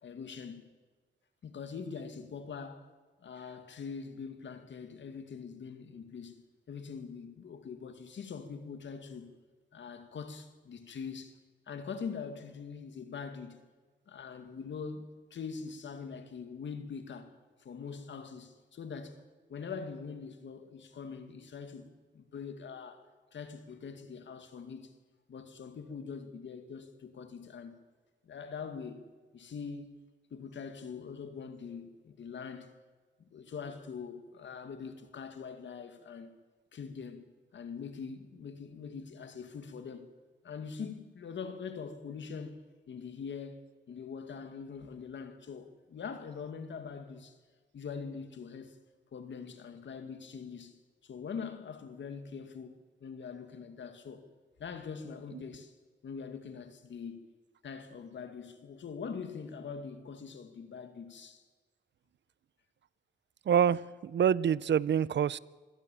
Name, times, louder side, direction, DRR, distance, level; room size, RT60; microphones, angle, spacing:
voice 1, 0.0-0.6 1.4-2.9 3.2-6.4 6.7-9.3 9.7-11.3 11.7-13.6 14.1-17.3 17.6-19.2 19.5-24.9 25.3-27.8 28.2-29.0 29.3-30.0 30.3-32.7 33.2-36.4 36.7-37.2 37.5-40.1 40.4-43.6 43.9-47.4 47.7-48.8 49.1-54.2 54.6-55.7 56.0-57.2 57.6-61.4, left 6 dB, 90° left, 2.2 m, -43 dB
voice 2, 63.5-65.4, right 8 dB, 75° right, 0.6 m, -26 dB
25.0 x 17.0 x 7.2 m
cardioid pair, 80°, 19 cm